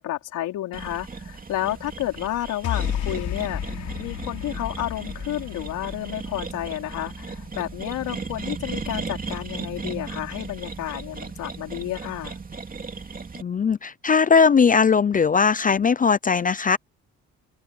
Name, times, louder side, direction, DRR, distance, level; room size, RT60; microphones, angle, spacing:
voice 1, 0.0-12.4, left 14 dB, 90° left, 4.0 m, -31 dB
sound 1, 0.7-13.4, right 4 dB, 30° right, 2.7 m, -36 dB
sound 2, 2.6-9.1, left 11 dB, 75° left, 6.0 m, -34 dB
voice 2, 13.4-16.8, left 5 dB, 30° left, 0.5 m, -19 dB
open air
cardioid pair, 90°, 30 cm